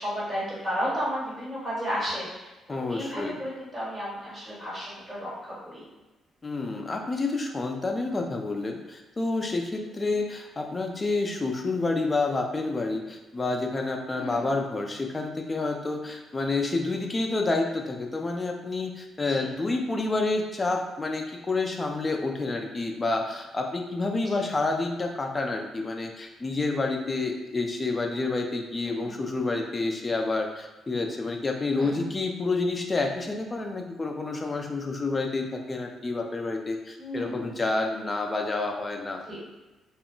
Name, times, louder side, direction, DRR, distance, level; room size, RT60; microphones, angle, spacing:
voice 1, 0.0-5.8 9.8-10.2 14.2-14.5 19.3-19.5 24.3-24.4 28.8-29.1 31.7-32.0 37.0-37.6 39.3-39.4, equal, 10° right, -8 dB, 1.4 m, -33 dB
voice 2, 2.7-3.4 6.4-39.2, left 3 dB, 25° left, 3 dB, 0.4 m, -29 dB
2.2 x 2.0 x 3.7 m, 1.1 s
cardioid pair, 90°, 0 cm